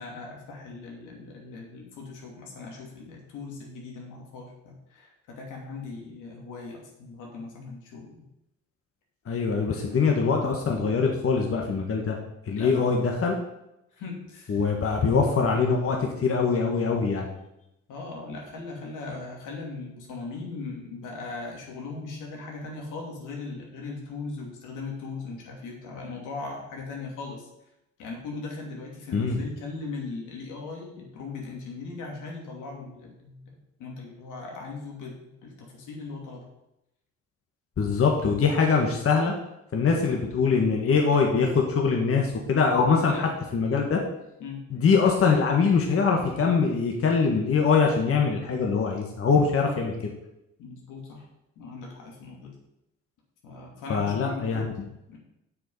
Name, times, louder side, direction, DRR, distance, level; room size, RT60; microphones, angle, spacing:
voice 1, 0.0-8.2 9.5-9.9 12.5-13.1 13.9-14.6 17.9-27.5 28.0-36.5 43.1-43.3 44.4-44.6 49.3-49.8 50.6-51.3 51.6-52.5 53.4-55.2, left 3 dB, 90° left, -1 dB, 2.7 m, -39 dB
voice 2, 9.3-12.2 12.5-13.3 14.5-17.3 29.1-29.4 37.8-39.3 39.7-44.0 44.7-49.9 53.9-54.7, left 5 dB, 50° left, 1 dB, 1.6 m, -23 dB
7.6 x 6.7 x 5.6 m, 0.86 s
cardioid pair, 90°, 30 cm